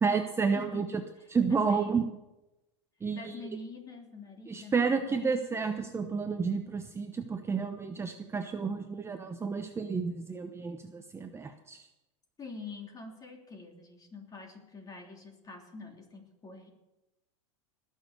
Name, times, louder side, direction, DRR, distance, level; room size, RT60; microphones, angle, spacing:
voice 1, 0.0-0.9 1.3-2.0 3.0-3.3 4.5-11.8, right 5 dB, 15° right, 6 dB, 0.9 m, -30 dB
voice 2, 0.5-2.2 3.1-5.5 12.4-16.7, left 3 dB, 25° left, 2 dB, 3.1 m, -45 dB
19.5 x 6.5 x 6.7 m, 0.97 s
hypercardioid pair, 110°, 16 cm